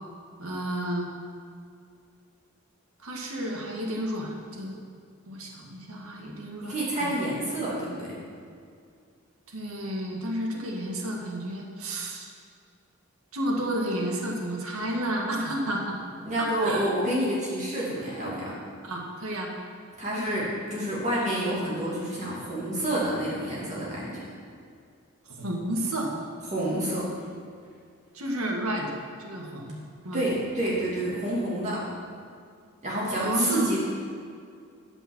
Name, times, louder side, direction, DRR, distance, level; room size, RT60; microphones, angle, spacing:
voice 1, 0.4-1.1 3.0-4.8 5.3-6.7 7.0-7.1 9.5-12.3 13.3-15.9 16.4-16.9 18.8-19.5 25.4-26.1 28.1-28.9 29.2-29.8 30.0-30.2 33.2-33.7, right 1 dB, 85° right, 0 dB, 1.8 m, -31 dB
voice 2, 6.7-8.1 16.2-18.5 20.0-24.2 26.5-27.1 30.1-31.8 32.8-33.8, right 1 dB, 30° right, -7 dB, 2.6 m, -28 dB
13.0 x 5.4 x 7.4 m, 2.3 s
head